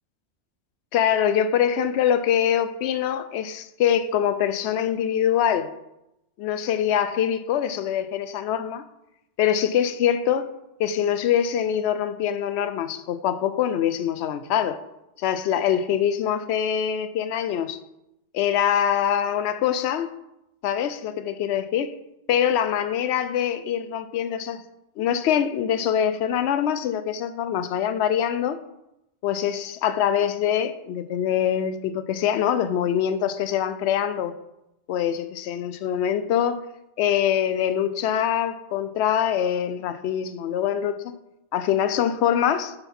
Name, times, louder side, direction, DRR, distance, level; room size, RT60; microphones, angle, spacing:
voice 1, 0.9-5.7 6.4-8.8 9.4-10.5 10.8-14.8 15.2-17.8 18.3-20.1 20.6-21.9 22.3-24.6 25.0-28.6 29.2-34.3 34.9-36.6 37.0-41.0 41.5-42.7, left 9 dB, 70° left, 0.8 m, -24 dB
9.7 x 4.1 x 5.3 m
omnidirectional pair, 1.2 m